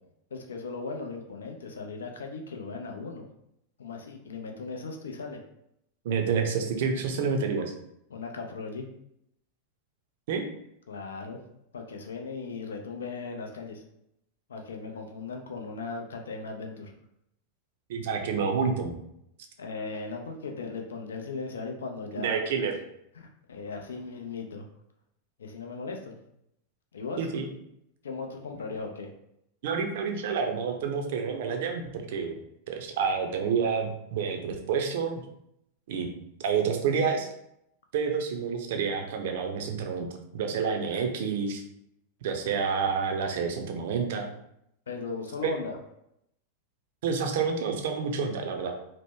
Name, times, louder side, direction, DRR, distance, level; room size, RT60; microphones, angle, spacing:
voice 1, 0.3-3.3 3.8-5.4 8.1-8.9 10.9-11.4 11.7-13.8 14.5-16.9 19.6-22.4 23.1-24.6 25.4-26.2 26.9-27.2 28.0-29.1 44.9-45.8, left 4 dB, 65° left, 3 dB, 0.5 m, -37 dB
voice 2, 6.0-7.7 10.3-10.5 17.9-19.0 22.2-22.7 27.2-27.5 29.6-32.3 32.7-35.2 35.9-36.1 36.4-37.3 37.9-40.1 40.3-41.6 42.2-44.3 45.4-45.5 47.0-48.7, right 6 dB, 55° right, 4 dB, 0.5 m, -28 dB
2.9 x 2.1 x 3.4 m, 0.78 s
figure-of-eight pair, 90°, 0 cm